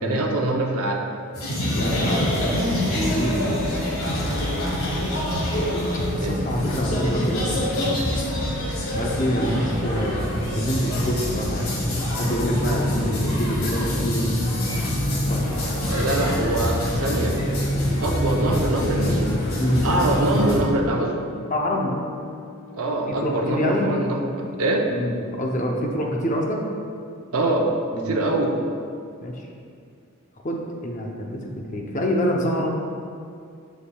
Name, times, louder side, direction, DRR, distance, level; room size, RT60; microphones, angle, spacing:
voice 1, 0.0-1.0 5.3-5.4 6.2-6.4 12.7-13.0 15.9-17.4 18.0-19.4 19.8-21.2 22.8-24.8 27.3-27.7 28.1-28.5, right 2 dB, 85° right, 0 dB, 0.7 m, -24 dB
sound 1, 1.3-20.6, equal, 75° left, 1.5 m, -25 dB
voice 2, 1.7-2.3 3.0-3.4 6.1-8.1 8.9-10.2 10.5-11.7 12.1-14.3 14.9-15.0 15.3-15.5 19.6-19.9 21.5-22.0 23.1-23.9 24.9-26.7 27.9-28.2 29.2-29.5 30.4-32.7, equal, 35° left, 0 dB, 0.6 m, -26 dB
Organ, 12.6-23.6, left 7 dB, 20° left, 1.3 m, -40 dB
7.0 x 7.0 x 2.3 m, 2.4 s
head